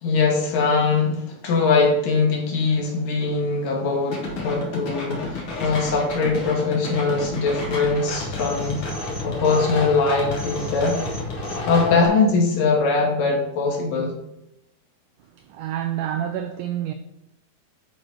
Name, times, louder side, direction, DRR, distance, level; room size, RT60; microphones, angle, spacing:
voice 1, 0.0-8.8 9.2-11.0 11.7-14.1, left 4 dB, 70° left, 3.2 m, -21 dB
sound 1, 4.1-12.0, left 2 dB, 50° left, 1.9 m, -31 dB
voice 2, 15.4-16.9, right 11 dB, 85° right, 1.8 m, -28 dB
11.0 x 4.2 x 4.8 m
omnidirectional pair, 4.2 m